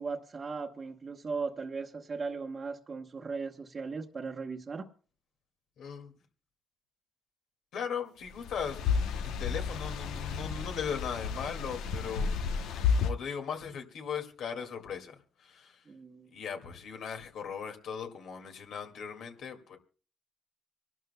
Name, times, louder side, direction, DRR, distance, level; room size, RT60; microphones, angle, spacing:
voice 1, 0.0-4.9 15.9-16.3, right 4 dB, 40° right, 1.1 m, -37 dB
voice 2, 5.8-6.1 7.7-8.8 9.2-12.3 12.6-15.8 16.3-19.8, left 7 dB, 75° left, 2.2 m, -38 dB
sound 1, 8.4-13.1, left 6 dB, 90° left, 0.8 m, -32 dB
26.5 x 12.0 x 2.2 m
cardioid pair, 90°, 0 cm